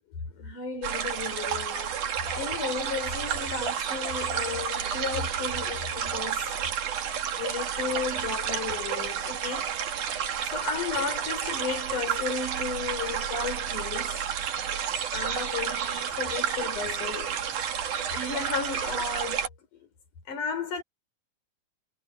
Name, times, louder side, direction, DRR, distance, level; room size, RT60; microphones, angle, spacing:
voice 1, 0.3-6.5 7.4-9.7 10.1-14.3 15.1-17.3 18.1-19.5 20.3-20.8, left 5 dB, 80° left, 6.5 m, -34 dB
sound 1, 0.8-19.5, right 8 dB, 80° right, 3.5 m, -31 dB
omnidirectional pair, 3.5 m